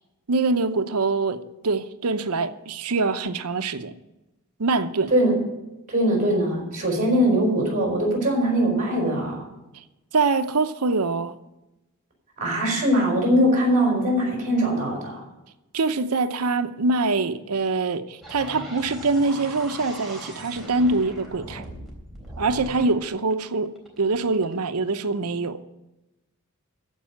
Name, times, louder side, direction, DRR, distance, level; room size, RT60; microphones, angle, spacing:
voice 1, 0.3-3.9 4.6-5.1 9.7-9.8 10.1-11.3 15.7-21.7 22.4-25.6, right 3 dB, 90° right, 11 dB, 0.8 m, -24 dB
voice 2, 5.9-9.4 12.4-15.2, equal, 35° right, 0 dB, 5.0 m, -21 dB
sound 1, 18.2-24.5, equal, ahead, 3.7 m, -40 dB
15.0 x 5.5 x 8.7 m, 0.98 s
head